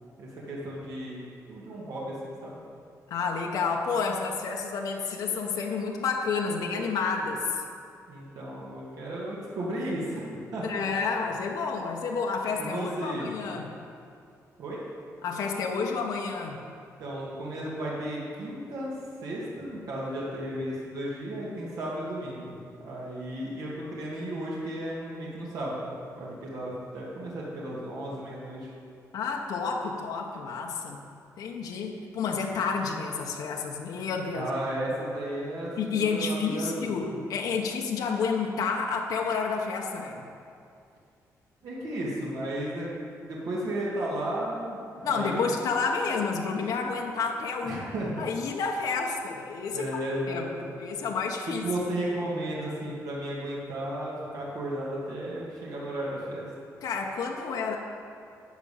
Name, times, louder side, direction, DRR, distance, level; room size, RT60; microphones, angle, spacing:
voice 1, 0.2-2.6 8.1-10.7 12.6-13.3 14.6-14.8 17.0-22.6 22.8-28.7 34.3-37.2 41.6-42.9 43.2-45.5 47.6-48.2 49.7-50.7 51.6-56.5, right 1 dB, 75° right, -6 dB, 2.2 m, -34 dB
voice 2, 3.1-7.6 10.6-13.7 15.2-16.6 29.1-31.0 31.4-34.5 35.8-40.3 45.0-47.8 48.2-49.8 50.3-50.5 50.8-51.6 56.8-57.8, left 5 dB, 85° left, 0 dB, 1.1 m, -30 dB
12.5 x 5.2 x 8.6 m, 2.5 s
wide cardioid pair, 175°, 6 cm